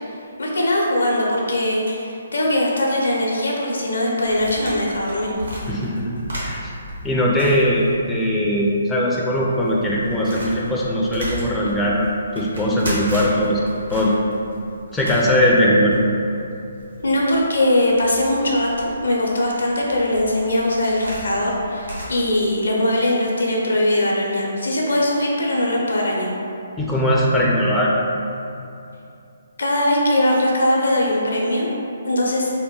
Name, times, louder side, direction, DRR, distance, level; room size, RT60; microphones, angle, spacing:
voice 1, 0.4-5.7 17.0-26.3 29.6-31.7 32.1-32.5, left 1 dB, 75° left, -3 dB, 0.6 m, -21 dB
sound 1, 4.2-8.4 8.7-8.8 9.3-22.1, equal, 80° right, 1.1 m, -35 dB
voice 2, 5.7-6.1 6.4-6.7 7.0-12.1 12.3-13.6 13.9-14.1 14.9-15.9 26.8-27.9, equal, 10° left, -5 dB, 0.3 m, -19 dB
2.9 x 2.2 x 3.6 m, 2.7 s
figure-of-eight pair, 140°, 0 cm